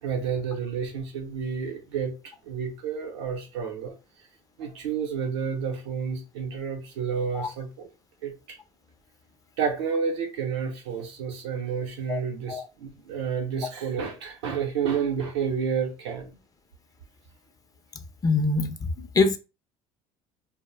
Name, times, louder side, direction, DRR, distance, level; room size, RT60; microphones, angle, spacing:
voice 1, 0.0-4.0 4.6-7.9 8.2-8.6 9.6-16.4, right 6 dB, 90° right, 0.6 m, -30 dB
voice 2, 18.2-19.4, left 3 dB, 25° left, 0.4 m, -24 dB
2.2 x 2.0 x 3.1 m
supercardioid pair, 75°, 14 cm